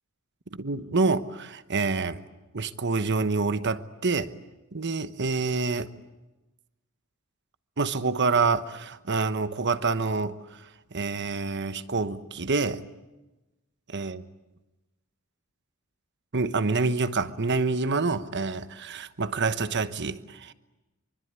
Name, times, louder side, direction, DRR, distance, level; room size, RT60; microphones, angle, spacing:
voice 1, 0.5-2.2 2.5-4.3 4.7-5.9 7.8-10.4 10.9-12.8 13.9-14.2 16.3-20.5, right 4 dB, 55° right, 13 dB, 1.1 m, -27 dB
25.0 x 24.5 x 9.8 m, 1.1 s
head